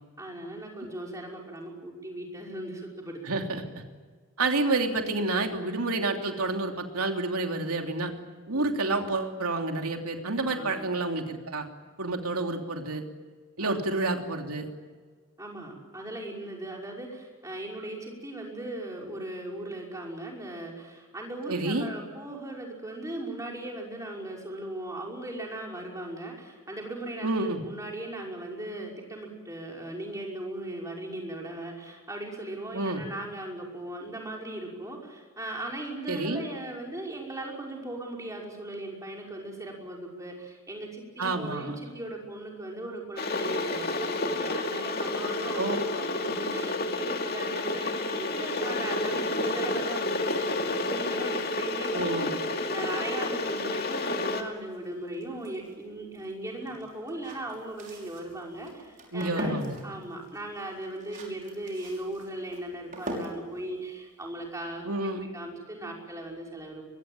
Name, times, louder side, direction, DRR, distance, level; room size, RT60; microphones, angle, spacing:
voice 1, 0.2-3.2 8.5-8.8 10.5-10.9 13.6-13.8 15.4-52.3 52.7-59.6 59.8-64.8 65.3-66.8, right 1 dB, 15° right, -1 dB, 5.6 m, -38 dB
voice 2, 3.2-3.6 4.4-8.1 8.5-11.7 12.0-13.0 13.6-14.7 21.5-21.9 27.2-27.6 32.7-33.0 36.1-36.4 41.2-41.7 45.5-45.8 51.9-52.4 59.1-59.8 64.8-65.3, right 2 dB, 85° right, 3 dB, 3.1 m, -29 dB
Water / Boiling, 43.2-54.4, left 2 dB, 45° left, 2.5 m, -30 dB
sound 1, 53.9-64.8, equal, 35° right, 5.7 m, -42 dB
23.5 x 23.0 x 9.1 m, 1.5 s
head